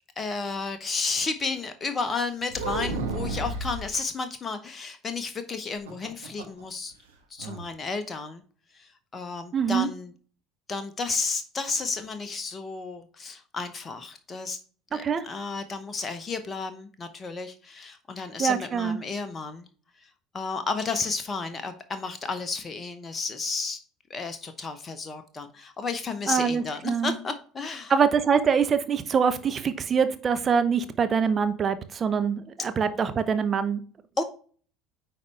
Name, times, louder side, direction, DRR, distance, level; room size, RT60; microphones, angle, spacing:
voice 1, 0.2-6.9 7.3-8.4 8.8-10.1 10.7-14.6 14.9-19.7 20.3-23.8 24.1-27.9 34.2-34.3, left 4 dB, 25° left, 9 dB, 0.9 m, -32 dB
sound 1, 2.5-3.9 5.7-6.6 6.9-7.0 7.4-7.7, right 3 dB, 70° right, 1.4 m, -32 dB
voice 2, 9.5-9.9 15.0-15.2 18.4-19.0 26.3-27.1 27.9-33.8, right 6 dB, 30° right, 10 dB, 0.9 m, -24 dB
9.5 x 4.1 x 3.3 m, 0.42 s
figure-of-eight pair, 65°, 0 cm